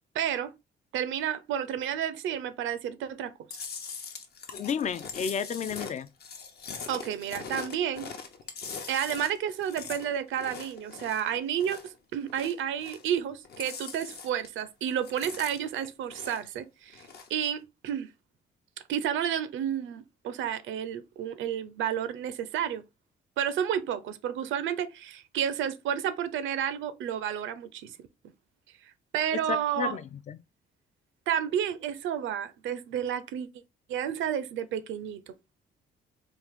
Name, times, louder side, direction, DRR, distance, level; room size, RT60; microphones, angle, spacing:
voice 1, 0.1-0.5 0.9-3.3 6.9-8.1 8.9-17.0 17.3-18.1 18.9-22.8 23.4-27.9 29.1-30.0 31.3-33.5 33.9-35.2, right 9 dB, 80° right, 0.5 m, -31 dB
Chewing mastication, 3.5-12.0 12.2-13.2 13.4-14.6 14.9-16.6 16.9-17.4, left 5 dB, 55° left, 0.8 m, -42 dB
voice 2, 4.5-6.1 29.5-30.4, left 7 dB, 35° left, 0.4 m, -32 dB
3.7 x 2.5 x 3.5 m
cardioid pair, 90°, 20 cm